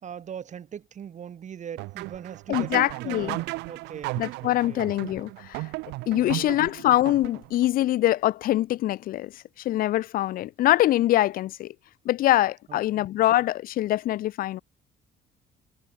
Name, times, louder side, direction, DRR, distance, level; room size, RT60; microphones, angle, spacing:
voice 1, 0.0-4.9 6.2-6.6 12.7-13.1, right 8 dB, 45° right, 2.7 m, -41 dB
sound 1, 1.8-7.7, right 22 dB, 90° right, 0.6 m, -35 dB
voice 2, 2.5-3.4 4.2-5.7 6.1-11.7 12.1-14.6, left 14 dB, 60° left, 0.5 m, -24 dB
cardioid pair, 110°, 17 cm